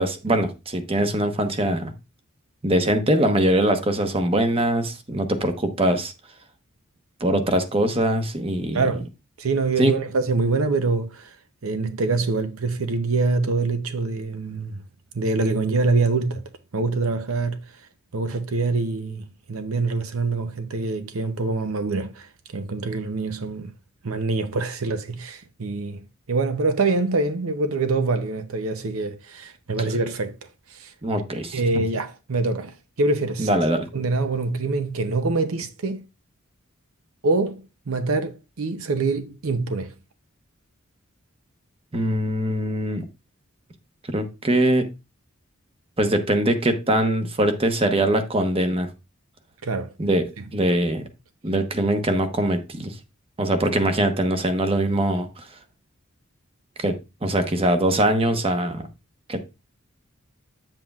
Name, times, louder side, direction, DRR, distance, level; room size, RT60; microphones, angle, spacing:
voice 1, 0.0-1.9 2.6-6.1 7.2-8.8 9.8-10.0 31.0-31.8 33.4-33.9 41.9-43.1 44.1-44.8 46.0-48.9 50.0-51.0 51.4-52.9 53.4-55.3 56.8-58.9 59.3-59.4, right 1 dB, 30° right, 1.0 m, -22 dB
voice 2, 8.7-9.1 9.4-11.4 11.6-14.8 15.1-16.4 16.7-17.6 18.1-23.7 24.0-30.4 30.7-30.9 31.5-33.5 33.9-36.0 37.2-39.9 49.6-49.9 50.4-50.5, right 3 dB, 80° right, 0.7 m, -25 dB
8.8 x 7.6 x 2.4 m
head